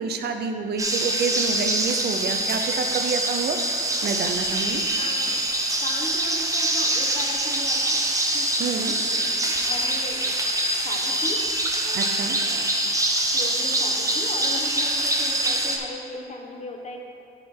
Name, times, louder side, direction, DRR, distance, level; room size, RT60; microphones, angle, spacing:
voice 1, 0.0-3.6 4.0-4.8 8.6-8.9 11.9-12.4, right 5 dB, 55° right, 5 dB, 0.6 m, -28 dB
sound 1, 0.8-15.8, right 1 dB, 15° right, 0.8 m, -24 dB
voice 2, 5.0-5.4 5.8-8.0 8.3-10.3 10.7-11.4 11.8-12.9 13.3-17.0, left 2 dB, 35° left, 1 dB, 1.0 m, -38 dB
10.5 x 3.7 x 4.4 m, 2.7 s
cardioid pair, 90°, 20 cm